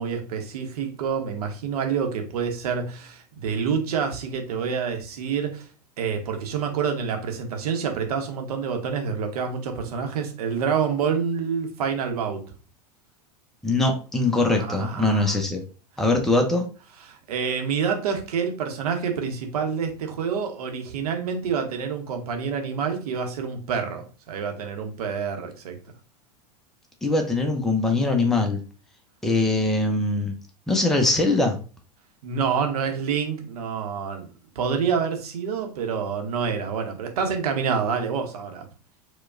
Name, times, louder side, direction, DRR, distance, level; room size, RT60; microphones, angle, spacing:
voice 1, 0.0-5.7 6.0-12.4 14.6-15.4 17.1-25.8 32.2-34.3 34.6-38.7, right 6 dB, 65° right, 4 dB, 0.9 m, -27 dB
voice 2, 13.6-15.6 16.0-16.7 27.0-28.6 29.2-30.3 30.7-31.6, left 2 dB, ahead, 3 dB, 0.6 m, -22 dB
4.4 x 2.2 x 2.5 m, 0.36 s
figure-of-eight pair, 85°, 21 cm